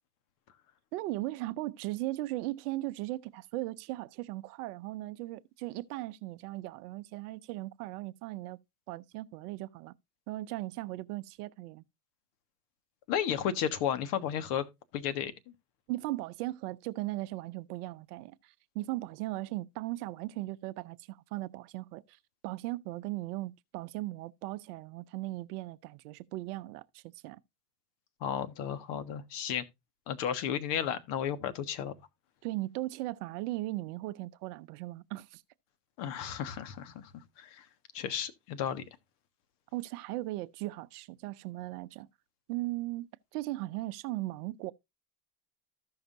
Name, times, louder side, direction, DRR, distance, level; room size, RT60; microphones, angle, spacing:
voice 1, 0.9-8.6 8.9-9.9 10.3-11.8 15.9-27.4 32.4-35.4 39.7-42.1 42.5-44.7, right 18 dB, 70° right, 0.7 m, -38 dB
voice 2, 13.1-14.7 14.9-15.5 28.2-29.6 30.1-31.9 36.0-37.1 37.4-37.7 37.9-38.8, left 9 dB, 55° left, 1.4 m, -33 dB
14.5 x 5.8 x 2.6 m
hypercardioid pair, 105°, 48 cm